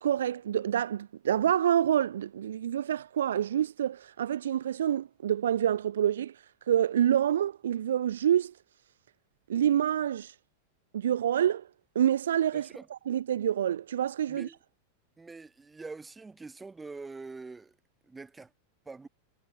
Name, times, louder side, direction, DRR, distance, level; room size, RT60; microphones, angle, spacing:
voice 1, 0.0-6.3 6.7-8.5 9.5-10.3 10.9-11.7 12.0-14.5, right 10 dB, 65° right, 0.3 m, -27 dB
voice 2, 12.5-12.9 14.3-14.6 15.2-17.8 18.0-18.5 18.9-19.1, right 3 dB, 10° right, 0.7 m, -44 dB
figure-of-eight pair, 90°, 0 cm